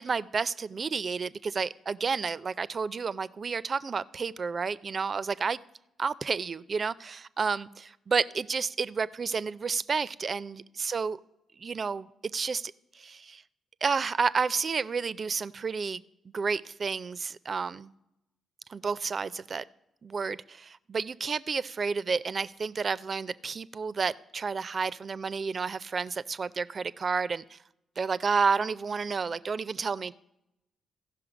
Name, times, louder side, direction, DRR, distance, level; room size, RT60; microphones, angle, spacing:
voice 1, 0.0-5.6 6.0-11.2 11.6-13.4 13.8-16.0 16.3-17.9 18.7-19.6 20.0-27.6 28.0-30.1, right 5 dB, 45° right, 18 dB, 0.4 m, -31 dB
14.5 x 5.7 x 5.0 m, 0.87 s
supercardioid pair, 50°, 0 cm